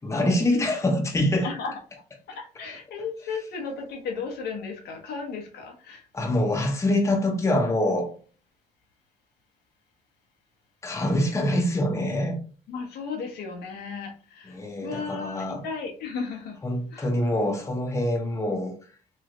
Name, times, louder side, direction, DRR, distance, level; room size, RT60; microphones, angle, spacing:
voice 1, 0.0-1.5 6.1-8.1 10.8-12.4 14.5-15.6 16.6-18.7, left 1 dB, 15° left, 0.8 m, -25 dB
voice 2, 1.4-6.1 12.7-16.6 16.9-17.1, left 5 dB, 75° left, 0.9 m, -35 dB
3.1 x 3.1 x 2.5 m
cardioid pair, 110°, 17 cm